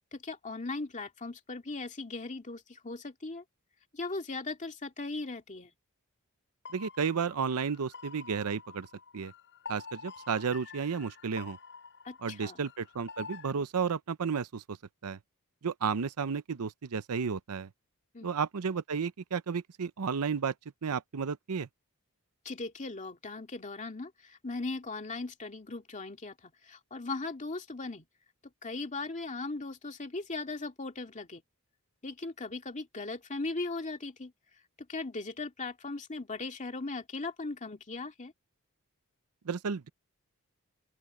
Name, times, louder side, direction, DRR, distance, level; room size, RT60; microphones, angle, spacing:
voice 1, 0.1-3.4 3.9-5.7 12.0-12.6 18.1-18.3 22.4-28.1 28.6-31.4 32.0-34.3 34.8-38.3, left 3 dB, 35° left, 2.2 m, -38 dB
sound 1, 6.6-13.5, left 5 dB, 55° left, 5.5 m, -48 dB
voice 2, 6.7-8.9 9.1-9.3 9.7-11.6 12.2-14.8 15.0-15.2 15.6-17.7 18.2-20.5 20.8-21.7 39.5-39.9, right 6 dB, 80° right, 0.6 m, -32 dB
open air
head